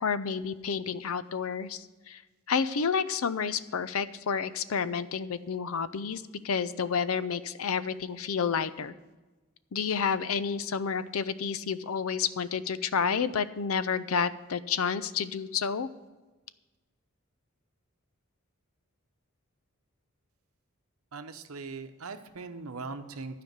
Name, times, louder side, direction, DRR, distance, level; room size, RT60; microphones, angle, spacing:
voice 1, 0.0-2.2 2.5-8.9 9.7-15.9, left 6 dB, 75° left, 15 dB, 0.5 m, -30 dB
voice 2, 21.1-23.4, right 4 dB, 75° right, 8 dB, 0.8 m, -40 dB
12.0 x 5.1 x 8.0 m, 1.2 s
head